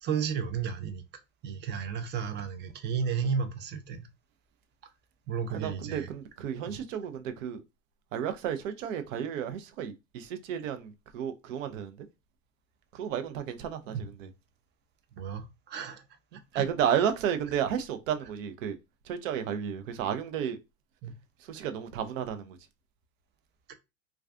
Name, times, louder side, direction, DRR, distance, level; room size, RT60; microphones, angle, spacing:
voice 1, 0.0-1.0 1.4-4.1 5.3-6.1 13.9-14.0 15.2-16.0 16.5-16.6 21.0-21.1 23.7-23.8, right 6 dB, 30° right, 0.5 m, -33 dB
voice 2, 5.5-7.6 8.1-12.0 12.9-14.3 16.5-18.8 19.1-20.6 21.5-22.6, right 9 dB, 75° right, 0.6 m, -32 dB
2.3 x 2.3 x 2.4 m
hypercardioid pair, 90°, 39 cm